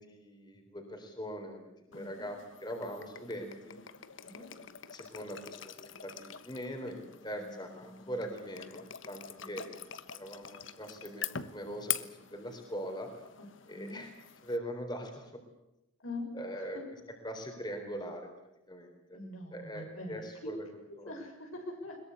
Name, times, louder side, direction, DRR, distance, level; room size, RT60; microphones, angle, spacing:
voice 1, 0.0-3.8 4.4-9.7 10.1-13.1 13.7-14.1 14.4-15.4 16.3-16.8 17.2-18.3 18.7-19.2 19.5-20.6 21.0-21.1, equal, 20° left, 4 dB, 3.8 m, -42 dB
voice 2, 1.9-2.3 3.7-3.8 4.2-4.5 7.3-8.3 9.4-9.7 13.7-14.0 16.0-16.8 19.1-20.5 20.8-22.0, left 1 dB, 80° left, 3 dB, 6.8 m, -45 dB
sound 1, 1.9-14.6, left 10 dB, 65° left, 1.3 m, -44 dB
22.0 x 21.5 x 8.4 m, 0.93 s
head